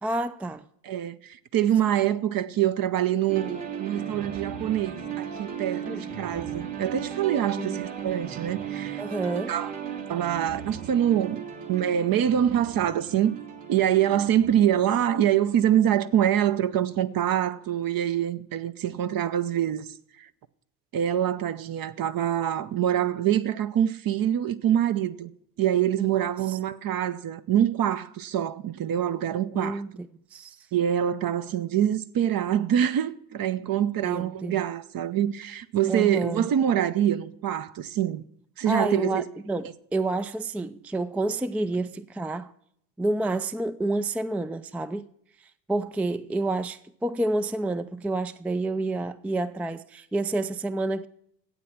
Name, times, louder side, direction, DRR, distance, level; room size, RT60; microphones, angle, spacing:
voice 1, 0.0-0.7 5.9-6.0 7.6-7.8 9.0-9.5 26.0-26.6 29.5-30.6 34.0-34.6 35.9-36.5 38.7-42.5 43.0-45.1 45.7-51.1, right 2 dB, 5° right, 0.4 m, -29 dB
voice 2, 0.8-9.0 9.3-9.7 10.1-11.4 11.7-13.4 13.7-19.9 20.2-20.3 20.9-25.3 25.6-29.8 30.7-38.2 38.6-39.3, right 10 dB, 45° right, 0.8 m, -25 dB
sound 1, 3.3-17.0, right 8 dB, 65° right, 2.5 m, -37 dB
12.0 x 8.5 x 5.9 m
hypercardioid pair, 60°, 48 cm